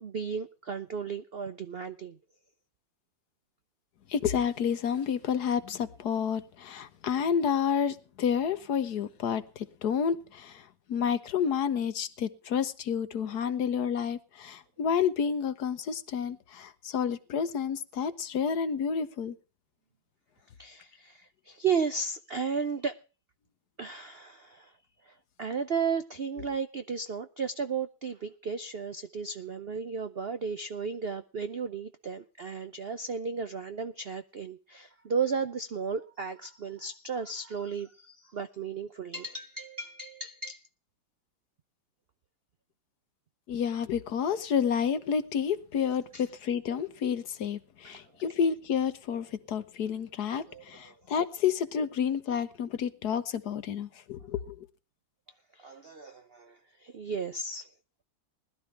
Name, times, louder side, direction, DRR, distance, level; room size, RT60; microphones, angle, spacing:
voice 1, 0.0-2.2 20.6-23.0 23.8-24.7 25.0-40.6 46.1-46.2 47.8-48.0 50.4-50.9 55.5-57.7, right 5 dB, 70° right, 0.5 m, -34 dB
voice 2, 4.1-19.3 43.5-54.6, left 7 dB, 60° left, 1.4 m, -30 dB
20.5 x 12.0 x 3.3 m
omnidirectional pair, 2.1 m